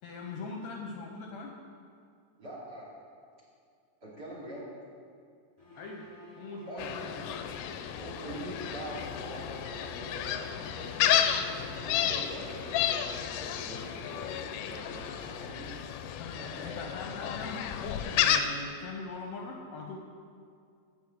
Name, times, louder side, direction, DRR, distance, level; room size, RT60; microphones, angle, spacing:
voice 1, 0.0-1.5 5.8-6.1 6.4-7.1 16.2-20.0, left 3 dB, 70° left, 1 dB, 1.9 m, -41 dB
voice 2, 2.4-2.9 4.0-4.7 6.7-7.4 8.0-11.2 11.8-15.7 16.4-16.8, equal, 35° right, -6 dB, 3.1 m, -43 dB
sound 1, 5.6-15.8, left 3 dB, 10° left, 2.3 m, -51 dB
Gull seagull, 6.8-18.4, left 10 dB, 90° left, 2.2 m, -32 dB
12.0 x 5.0 x 8.4 m, 2.3 s
omnidirectional pair, 3.6 m